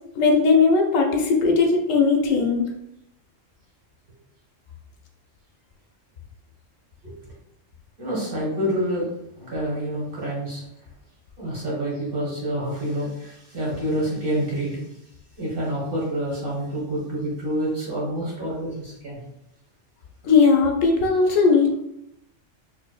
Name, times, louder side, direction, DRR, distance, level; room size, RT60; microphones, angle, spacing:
voice 1, 0.2-2.7 20.2-21.8, left 4 dB, 85° left, 2 dB, 1.1 m, -18 dB
voice 2, 8.0-9.1 9.4-10.6 11.4-14.8 15.4-19.3, right 1 dB, 45° right, -6 dB, 1.6 m, -27 dB
4.7 x 2.7 x 2.2 m, 0.82 s
omnidirectional pair, 1.3 m